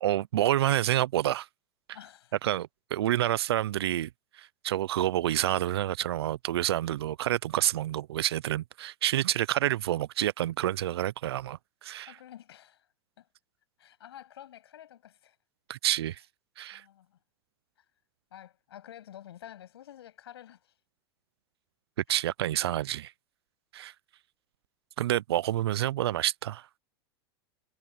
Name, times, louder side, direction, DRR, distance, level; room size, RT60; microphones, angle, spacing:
voice 1, 0.0-1.5 2.4-4.1 4.4-12.1 15.7-16.2 16.6-16.8 22.1-23.1 23.7-23.9 25.0-26.7, right 13 dB, 85° right, 0.5 m, -28 dB
voice 2, 1.9-2.4 12.1-12.9 13.2-13.3 13.8-15.4 16.1-16.2 16.7-17.2 17.8-17.9 18.3-20.7 22.1-22.2, left 11 dB, 85° left, 7.3 m, -50 dB
hypercardioid pair, 100°, 13 cm